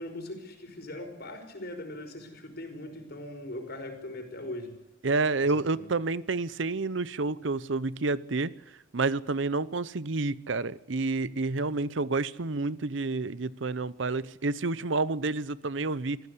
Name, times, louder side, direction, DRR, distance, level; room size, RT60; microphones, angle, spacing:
voice 1, 0.0-4.7 5.4-5.9, left 1 dB, 55° left, 6 dB, 5.2 m, -40 dB
voice 2, 5.0-8.5 8.9-16.2, right 3 dB, 70° right, 18 dB, 0.8 m, -29 dB
25.5 x 15.5 x 8.3 m, 0.94 s
head